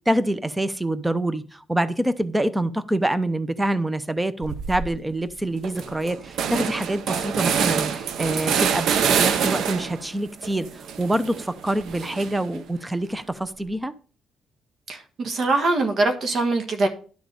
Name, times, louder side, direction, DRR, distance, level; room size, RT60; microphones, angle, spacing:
voice 1, 0.1-13.9, right 1 dB, 10° right, 14 dB, 0.7 m, -26 dB
sound 1, 4.4-4.9 5.3-5.4 5.6-10.1 10.4-12.6, right 7 dB, 75° right, 0.8 m, -25 dB
voice 2, 14.9-16.9, right 2 dB, 55° right, 6 dB, 1.4 m, -23 dB
11.5 x 3.9 x 6.8 m, 0.40 s
cardioid pair, 90°, 0 cm